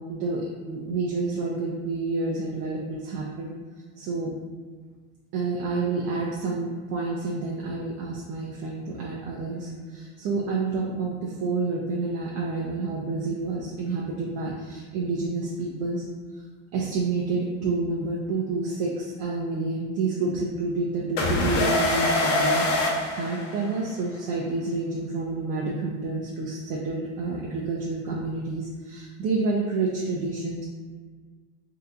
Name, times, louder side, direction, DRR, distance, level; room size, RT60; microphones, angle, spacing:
voice 1, 0.1-0.4 0.7-3.5 4.0-4.3 5.3-16.0 16.7-22.7 23.1-30.6, right 3 dB, 55° right, -3 dB, 0.6 m, -29 dB
sound 1, 21.2-24.0, left 2 dB, 90° left, 0.7 m, -24 dB
2.8 x 2.3 x 3.7 m, 1.5 s
supercardioid pair, 110°, 36 cm